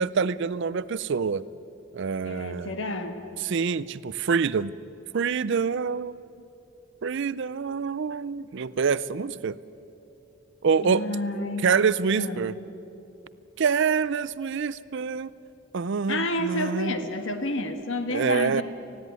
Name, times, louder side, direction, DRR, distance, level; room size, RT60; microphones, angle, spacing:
voice 1, 0.0-1.4 1.9-2.7 3.4-4.7 5.1-6.2 7.0-9.6 10.6-11.1 11.6-12.5 13.6-15.3 15.7-17.0 18.1-18.6, right 5 dB, 55° right, 18 dB, 0.4 m, -26 dB
voice 2, 2.2-3.2 10.8-11.7 12.1-12.5 16.1-18.6, left 1 dB, 60° left, 7 dB, 1.4 m, -30 dB
19.0 x 15.5 x 9.4 m, 2.8 s
head